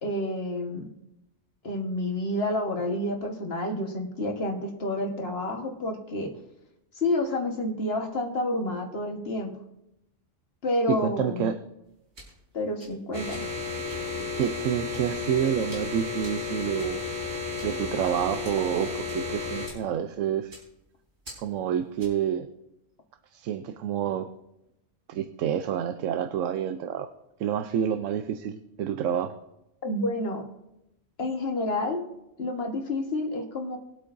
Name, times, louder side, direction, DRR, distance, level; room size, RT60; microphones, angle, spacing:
voice 1, 0.0-0.9 1.6-6.3 6.9-9.6 10.6-11.5 12.5-13.4 29.8-30.4 31.2-32.0 32.4-33.8, left 1 dB, 55° left, 3 dB, 1.6 m, -29 dB
voice 2, 10.9-11.6 14.3-17.0 17.6-20.5 21.4-22.5 23.3-24.3 25.1-27.1 27.4-29.4, right 9 dB, 85° right, 10 dB, 1.0 m, -28 dB
sound 1, 11.8-22.3, right 1 dB, 60° right, 3.9 m, -51 dB
sound 2, 13.1-19.7, left 4 dB, 35° right, 1.9 m, -33 dB
21.5 x 8.4 x 2.6 m, 0.89 s
omnidirectional pair, 1.3 m